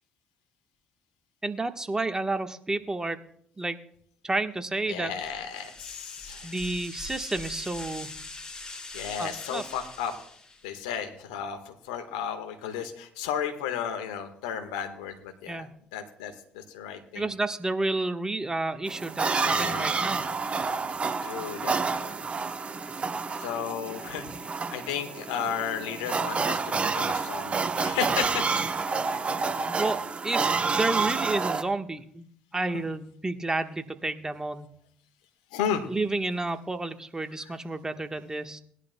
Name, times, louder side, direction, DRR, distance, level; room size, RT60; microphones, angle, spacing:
voice 1, 1.4-3.2 3.6-3.8 4.2-5.1 6.4-8.1 9.2-9.6 15.5-15.7 17.1-20.3 29.8-32.3 32.5-34.7 35.9-38.6, right 2 dB, 20° right, 7 dB, 1.3 m, -30 dB
voice 2, 4.9-6.5 8.9-10.1 10.6-15.7 15.9-17.3 19.4-19.9 21.2-22.2 23.4-28.5 35.5-35.8 37.4-37.5, left 8 dB, 85° left, 6 dB, 1.4 m, -34 dB
sound 1, 5.2-10.8, left 2 dB, 25° left, 4.4 m, -42 dB
sound 2, 18.9-31.6, right 4 dB, 35° right, 0.9 m, -29 dB
19.5 x 11.5 x 2.2 m, 0.65 s
hypercardioid pair, 60°, 3 cm